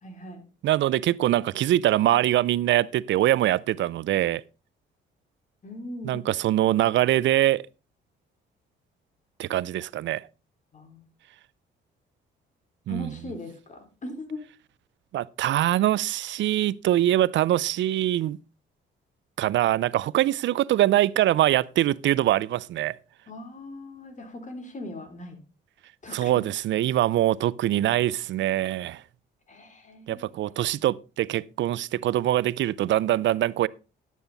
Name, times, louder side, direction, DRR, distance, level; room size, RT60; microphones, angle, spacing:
voice 1, 0.0-0.4 5.6-6.3 10.7-11.1 12.9-14.4 23.3-25.4 26.0-26.3 29.5-30.3, left 2 dB, 40° left, 3.4 m, -40 dB
voice 2, 0.6-4.4 6.0-7.7 9.4-10.3 12.9-13.1 15.1-18.4 19.4-23.0 26.1-29.0 30.1-33.7, right 13 dB, 70° right, 0.5 m, -23 dB
11.5 x 9.3 x 4.0 m
cardioid pair, 90°, 20 cm